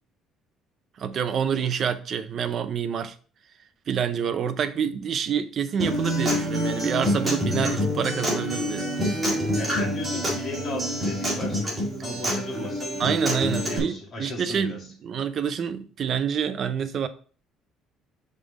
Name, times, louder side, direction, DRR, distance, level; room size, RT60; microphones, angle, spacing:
voice 1, 1.0-3.1 3.9-8.9 13.0-17.1, right 7 dB, 35° right, 0.5 m, -27 dB
Acoustic guitar, 5.8-13.8, equal, 10° right, 2.0 m, -27 dB
voice 2, 9.6-11.6 12.0-13.0 13.7-14.8, left 2 dB, 30° left, 2.3 m, -35 dB
5.4 x 5.0 x 3.9 m
cardioid pair, 170°, 0 cm